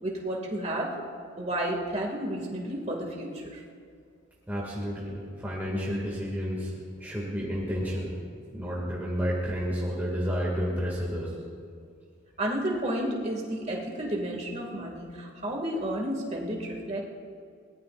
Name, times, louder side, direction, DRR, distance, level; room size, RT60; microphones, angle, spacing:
voice 1, 0.0-1.0 1.4-3.6 12.4-17.0, right 1 dB, 35° right, 0 dB, 2.4 m, -31 dB
voice 2, 4.5-8.1 8.5-11.3, equal, 10° right, -5 dB, 2.3 m, -31 dB
23.0 x 19.0 x 2.6 m, 2.3 s
head